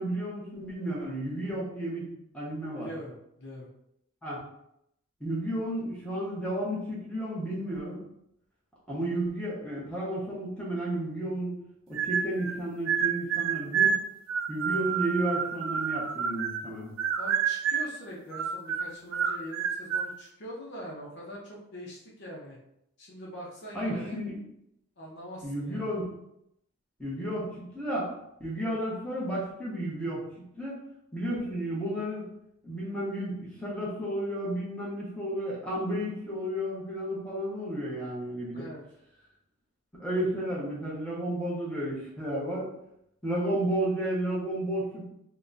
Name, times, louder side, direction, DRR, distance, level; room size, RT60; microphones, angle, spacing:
voice 1, 0.0-2.9 4.2-4.4 5.2-8.1 8.9-11.6 11.9-14.0 14.5-16.9 23.7-24.4 25.4-26.1 27.0-28.1 28.4-30.8 31.1-32.3 32.6-38.6 39.9-42.7 43.2-45.1, right 1 dB, 5° left, -7 dB, 0.9 m, -32 dB
voice 2, 2.7-3.7 17.2-22.6 23.0-24.2 25.0-25.9 38.5-38.8, equal, 55° left, -3 dB, 0.7 m, -43 dB
sound 1, 11.9-12.6 12.9-16.7 17.0-18.0 18.3-20.1, right 7 dB, 70° right, 0.3 m, -29 dB
2.9 x 2.2 x 3.8 m, 0.78 s
head